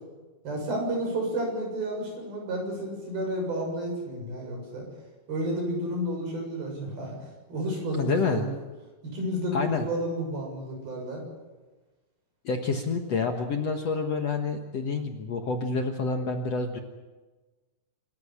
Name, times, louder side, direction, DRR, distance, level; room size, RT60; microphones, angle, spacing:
voice 1, 0.4-4.8 5.3-7.2 7.5-8.5 9.1-11.2, right 1 dB, 70° right, 1 dB, 8.9 m, -31 dB
voice 2, 7.9-8.5 9.5-9.9 12.5-16.8, left 4 dB, 60° left, 4 dB, 2.0 m, -28 dB
26.5 x 14.0 x 10.0 m, 1.2 s
omnidirectional pair, 4.4 m